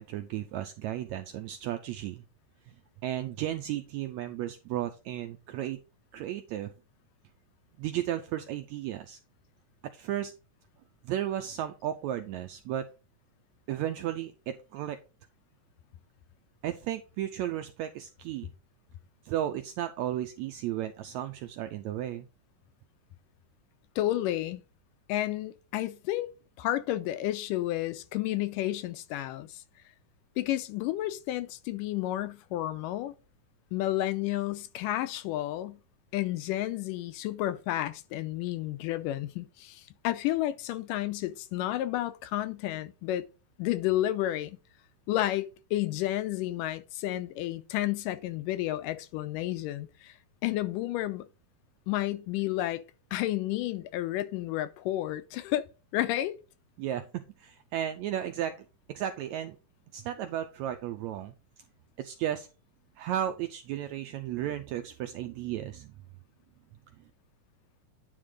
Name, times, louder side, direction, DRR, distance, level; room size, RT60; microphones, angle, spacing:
voice 1, 0.0-2.2 3.0-5.8 6.1-6.7 7.8-9.2 9.9-10.3 11.0-12.9 13.7-15.0 16.6-18.5 19.2-22.3 56.8-58.6 58.9-59.6 59.9-61.3 62.0-62.5 63.0-65.9, right 11 dB, 85° right, 1.6 m, -34 dB
voice 2, 24.0-24.6 25.1-26.3 26.6-29.6 30.4-33.1 33.7-35.8 36.1-43.2 43.6-44.6 45.1-50.1 50.4-51.3 51.9-52.8 53.1-56.3, left 14 dB, 90° left, 2.3 m, -31 dB
9.6 x 3.8 x 4.9 m
omnidirectional pair, 3.8 m